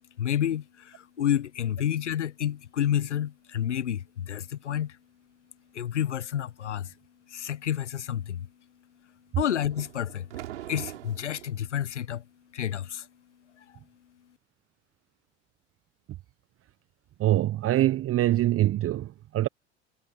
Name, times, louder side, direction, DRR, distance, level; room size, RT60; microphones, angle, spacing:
voice 1, 0.2-5.0 5.7-6.9 7.3-8.5 9.4-10.3 10.7-12.2 12.5-13.0, left 10 dB, 85° left, 1.2 m, -29 dB
sound 1, 9.7-11.6, right 13 dB, 75° right, 6.3 m, -41 dB
voice 2, 17.2-19.5, right 14 dB, 40° right, 1.1 m, -24 dB
figure-of-eight pair, 70°, 35 cm